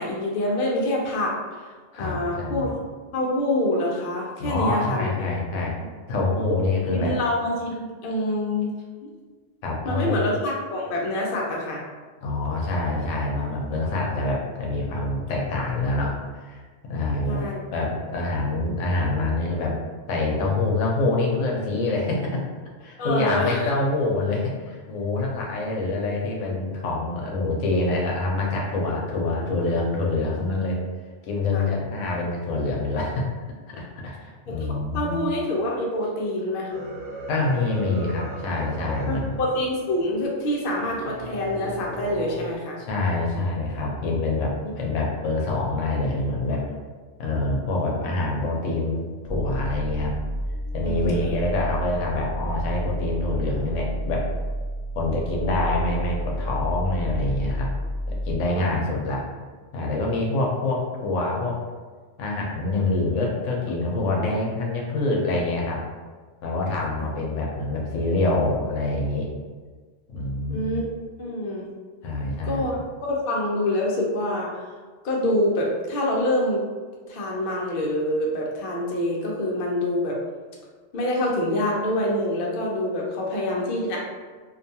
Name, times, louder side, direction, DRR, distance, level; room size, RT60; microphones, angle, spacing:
voice 1, 0.0-1.7 2.0-2.8 3.1-5.3 5.8-5.9 6.9-8.7 9.0-9.1 9.8-11.8 17.2-17.6 23.0-23.7 31.5-31.7 34.5-36.8 39.1-42.8 50.8-51.4 58.5-58.7 67.0-67.1 70.5-70.8 71.2-71.7 72.4-72.7 73.0-74.7 75.0-76.6 77.1-80.2 80.9-84.0, left 1 dB, 55° left, -2 dB, 0.6 m, -26 dB
voice 2, 1.9-2.7 4.4-5.7 6.1-7.2 9.6-10.2 12.2-16.6 16.9-17.4 17.7-19.7 20.1-22.4 22.8-30.8 31.3-33.3 33.7-35.3 37.3-39.4 42.8-46.6 47.2-50.1 50.7-54.3 54.9-57.7 58.1-59.2 59.7-61.6 62.2-65.8 66.4-69.3 70.1-70.7 72.0-72.6, left 2 dB, 80° left, -2 dB, 0.9 m, -26 dB
sound 1, 36.7-42.6, right 1 dB, 70° right, 0.8 m, -38 dB
sound 2, 49.3-58.4, equal, 35° right, 1.0 m, -30 dB
2.5 x 2.2 x 2.7 m, 1.4 s
omnidirectional pair, 1.3 m